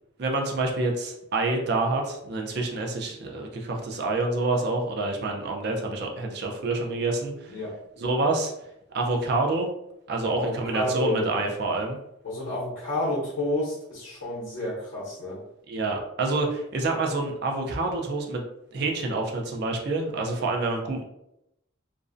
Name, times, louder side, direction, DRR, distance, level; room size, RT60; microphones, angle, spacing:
voice 1, 0.2-7.6 8.0-8.5 8.9-9.7 10.1-12.0 15.7-18.4 18.7-21.0, right 2 dB, 50° right, 1 dB, 0.4 m, -27 dB
voice 2, 10.2-11.3 12.2-15.4, left 1 dB, 65° left, -7 dB, 0.8 m, -30 dB
2.5 x 2.0 x 2.5 m, 0.82 s
head